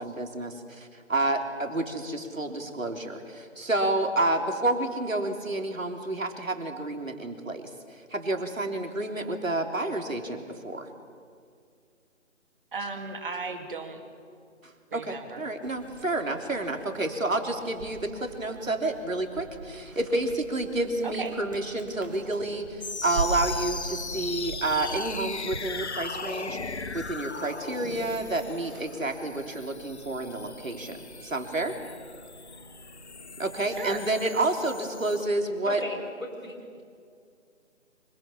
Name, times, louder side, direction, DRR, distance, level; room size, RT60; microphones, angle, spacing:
voice 1, 0.0-10.9 14.9-31.8 33.4-35.8, right 2 dB, 75° right, 4 dB, 3.7 m, -30 dB
voice 2, 12.7-14.0 14.9-15.5 21.0-21.3 22.3-22.5 33.7-34.0, right 4 dB, 40° right, 5 dB, 2.8 m, -36 dB
sound 1, 15.6-34.2, right 3 dB, 15° right, 1.2 m, -43 dB
sound 2, 22.8-35.3, left 4 dB, 55° left, 1.4 m, -39 dB
voice 3, 35.6-36.8, left 1 dB, 75° left, 2 dB, 7.2 m, -37 dB
26.0 x 24.5 x 7.2 m, 2.2 s
figure-of-eight pair, 155°, 40 cm